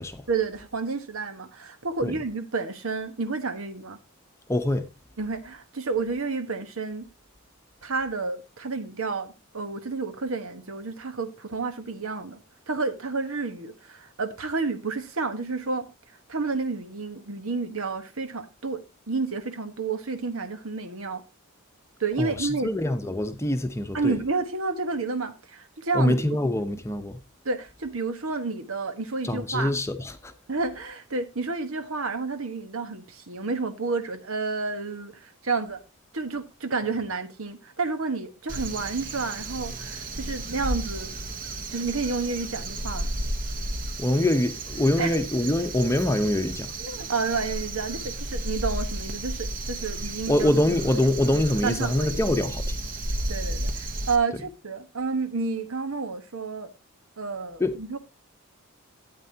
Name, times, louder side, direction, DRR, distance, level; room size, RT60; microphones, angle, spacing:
voice 1, 0.3-4.0 5.2-7.1 7.8-12.4 12.7-15.9 16.3-18.8 19.1-21.2 22.0-22.7 23.9-26.1 27.4-29.7 30.5-35.8 36.1-41.1 41.7-43.1 45.0-45.2 46.8-50.5 51.0-51.1 51.6-52.2 53.3-56.7 57.2-58.0, right 4 dB, 75° right, 1.3 m, -30 dB
voice 2, 4.5-4.9 22.2-24.2 25.9-27.2 29.2-30.3 44.0-46.7 50.3-52.8 57.6-57.7, left 1 dB, 15° left, 0.8 m, -24 dB
Crow, 38.5-54.2, right 2 dB, 40° right, 1.0 m, -33 dB
13.0 x 8.9 x 2.8 m
head